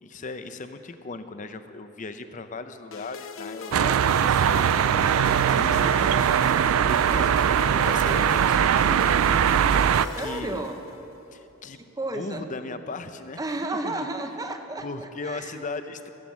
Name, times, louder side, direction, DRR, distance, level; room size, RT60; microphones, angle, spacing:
voice 1, 0.0-9.1 10.2-10.7 11.3-11.8 12.1-13.4 13.8-14.1 14.8-16.1, left 3 dB, 40° left, 10 dB, 0.6 m, -37 dB
sound 1, 2.9-11.2, left 5 dB, 70° left, 0.7 m, -40 dB
sound 2, 3.7-10.1, right 8 dB, 85° right, 0.3 m, -21 dB
voice 2, 10.0-10.8 12.0-12.5 13.4-15.6, right 2 dB, 20° right, 6 dB, 0.8 m, -33 dB
15.5 x 8.0 x 7.3 m, 2.9 s
head